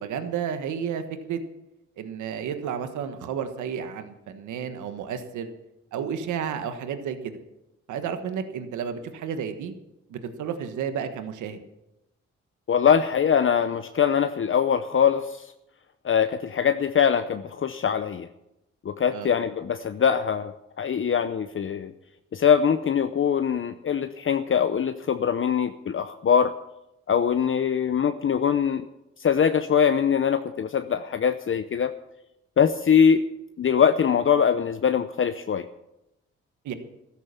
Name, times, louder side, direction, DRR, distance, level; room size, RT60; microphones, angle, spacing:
voice 1, 0.0-1.4 2.0-5.5 5.9-7.4 7.9-9.7 10.1-11.6 19.1-19.3 36.6-36.7, right 7 dB, 90° right, 9 dB, 1.4 m, -32 dB
voice 2, 12.7-15.4 16.0-18.3 18.8-21.9 22.3-26.5 27.1-28.8 29.2-31.9 32.6-33.2 33.6-35.6, left 7 dB, 45° left, 9 dB, 0.8 m, -22 dB
13.5 x 12.0 x 7.0 m, 0.92 s
cardioid pair, 65°, 29 cm